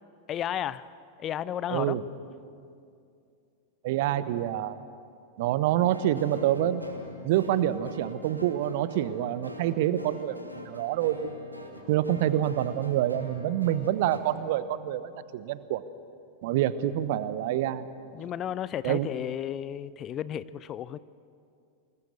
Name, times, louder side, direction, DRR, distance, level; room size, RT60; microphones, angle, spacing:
voice 1, 0.3-0.9 1.2-2.0 18.1-21.0, left 10 dB, 30° left, 18 dB, 0.5 m, -33 dB
voice 2, 1.7-2.0 3.8-4.8 5.4-6.8 7.2-11.3 11.9-15.8 16.4-17.9 18.8-19.1, right 12 dB, 50° right, 15 dB, 1.0 m, -27 dB
sound 1, 5.8-14.2, left 1 dB, 90° right, 2.6 m, -44 dB
25.5 x 21.0 x 6.9 m, 2.4 s
figure-of-eight pair, 90°, 0 cm